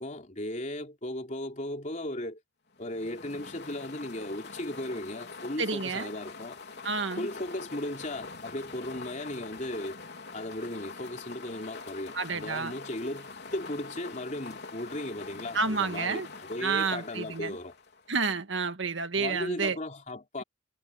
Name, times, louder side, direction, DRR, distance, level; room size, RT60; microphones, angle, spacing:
voice 1, 0.0-2.4 2.8-6.6 7.2-10.0 10.3-17.7 19.1-20.4, left 1 dB, 40° left, 3.5 m, -36 dB
sound 1, 2.8-18.2, left 4 dB, 55° left, 4.2 m, -44 dB
voice 2, 5.6-6.1 6.8-7.3 12.1-12.7 15.5-16.3 16.6-17.6 18.1-19.8, right 4 dB, 70° right, 1.8 m, -30 dB
head